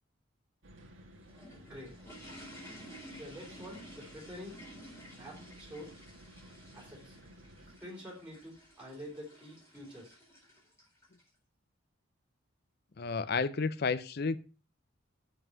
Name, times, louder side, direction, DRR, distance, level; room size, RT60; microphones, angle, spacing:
sound 1, 0.6-7.8, equal, 75° right, 1.6 m, -55 dB
sound 2, 1.2-11.3, equal, 15° left, 4.4 m, -53 dB
voice 1, 1.6-2.1 3.2-4.5 5.2-5.9 6.7-7.2 7.8-10.2, equal, 5° right, -5 dB, 3.7 m, -47 dB
voice 2, 13.0-14.4, left 4 dB, 50° left, 15 dB, 0.5 m, -31 dB
7.0 x 6.3 x 6.0 m, 0.35 s
head